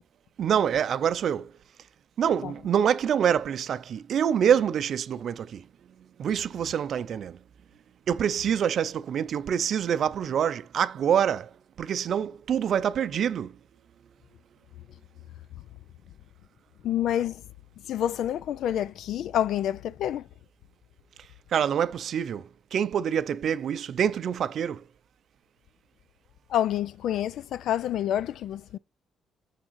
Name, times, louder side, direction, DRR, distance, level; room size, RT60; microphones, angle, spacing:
voice 1, 0.4-1.5 2.2-5.7 6.2-7.4 8.1-11.5 11.8-13.6 21.5-24.8, right 8 dB, 65° right, 0.5 m, -26 dB
voice 2, 16.8-17.4 17.9-20.2 26.5-28.8, left 11 dB, 75° left, 0.3 m, -28 dB
6.5 x 3.6 x 4.6 m
cardioid pair, 90°, 0 cm